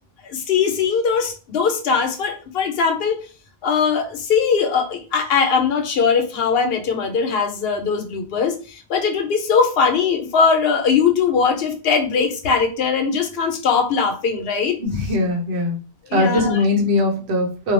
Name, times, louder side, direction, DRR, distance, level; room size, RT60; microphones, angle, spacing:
voice 1, 0.2-3.2 3.6-14.8 16.1-16.6, left 6 dB, 75° left, 5 dB, 0.8 m, -20 dB
voice 2, 14.8-15.8 16.1-17.7, left 2 dB, 90° right, 1 dB, 1.0 m, -20 dB
2.3 x 2.1 x 3.0 m, 0.36 s
omnidirectional pair, 1.0 m